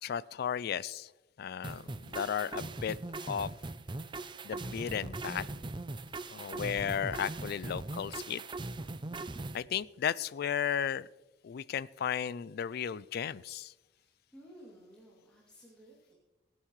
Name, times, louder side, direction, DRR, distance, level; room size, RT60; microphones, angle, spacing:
voice 1, 0.0-1.1 1.4-3.0 3.2-3.5 4.4-5.5 6.3-8.4 9.5-11.1 11.4-13.7, left 8 dB, 55° left, 20 dB, 0.3 m, -34 dB
sound 1, 1.6-9.6, right 2 dB, 25° right, 0.5 m, -40 dB
voice 2, 13.9-16.1, equal, 5° left, -6 dB, 2.6 m, -57 dB
23.5 x 9.4 x 3.2 m, 1.0 s
head